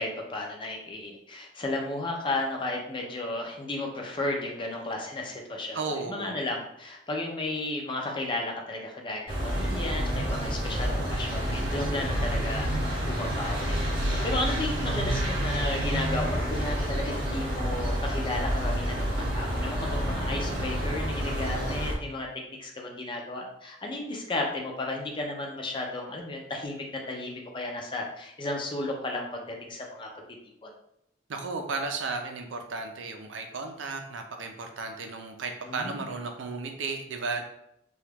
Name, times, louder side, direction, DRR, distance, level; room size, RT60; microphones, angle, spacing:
voice 1, 0.0-22.3 22.6-30.1 30.6-30.7 35.6-36.1, left 2 dB, 25° left, 1 dB, 0.5 m, -34 dB
voice 2, 5.7-6.4 31.3-37.4, right 4 dB, 80° right, 4 dB, 0.5 m, -34 dB
sound 1, 9.3-22.0, equal, 30° right, 0.9 m, -29 dB
2.9 x 2.3 x 3.4 m, 0.80 s
head